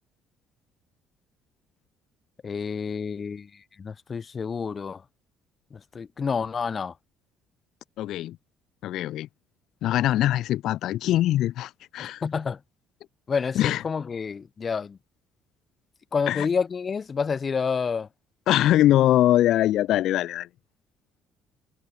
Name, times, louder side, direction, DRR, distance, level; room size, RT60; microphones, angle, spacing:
voice 1, 2.4-5.0 5.7-6.9 12.0-12.6 13.3-15.0 16.1-18.1, left 5 dB, 35° left, 1.0 m, -29 dB
voice 2, 8.0-8.4 8.8-9.3 9.8-12.2 13.6-13.8 16.3-16.5 18.5-20.5, left 13 dB, 60° left, 0.4 m, -22 dB
figure-of-eight pair, 50°, 0 cm